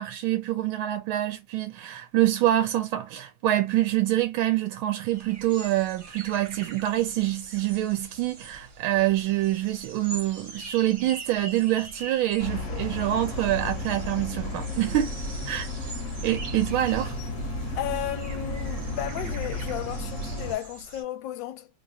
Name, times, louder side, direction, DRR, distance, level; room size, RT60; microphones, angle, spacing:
voice 1, 0.0-15.1 15.5-15.7 16.2-17.1, right 14 dB, 85° right, 1.4 m, -26 dB
sound 1, 5.1-21.0, right 3 dB, 55° right, 1.6 m, -44 dB
sound 2, 12.4-20.5, left 1 dB, 45° left, 1.3 m, -33 dB
voice 2, 17.8-21.7, left 12 dB, 75° left, 1.3 m, -34 dB
3.3 x 2.3 x 4.0 m
omnidirectional pair, 2.2 m